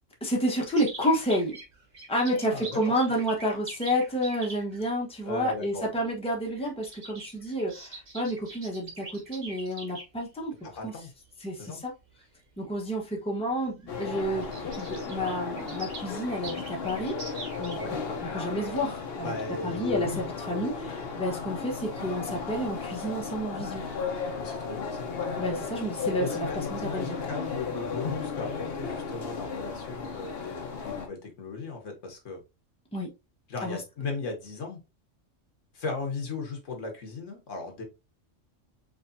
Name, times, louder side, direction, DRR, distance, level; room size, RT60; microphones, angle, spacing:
voice 1, 0.2-1.6 2.1-10.5 10.8-10.9 11.4-11.9 12.6-17.1 17.6-17.8 18.2-19.3 19.6-23.8 25.4-27.2 32.9-33.1 33.6-33.8, equal, 5° left, 1.0 m, -30 dB
sound 1, 0.6-4.8 5.8-6.1 6.4-10.0 10.7-11.1 11.7-11.8 12.1-12.2 13.2-13.3 13.5-13.6 13.8-18.2 18.5-18.6, right 3 dB, 35° right, 1.2 m, -44 dB
voice 2, 2.3-2.8 5.3-5.9 10.6-11.1 11.6-11.8 17.8-17.9 19.2-20.2 24.4-25.1 26.2-32.4 33.5-34.8 35.7-37.8, left 4 dB, 75° left, 1.6 m, -36 dB
sound 2, 13.9-31.1, left 5 dB, 55° left, 1.0 m, -35 dB
5.0 x 3.3 x 2.6 m
omnidirectional pair, 1.3 m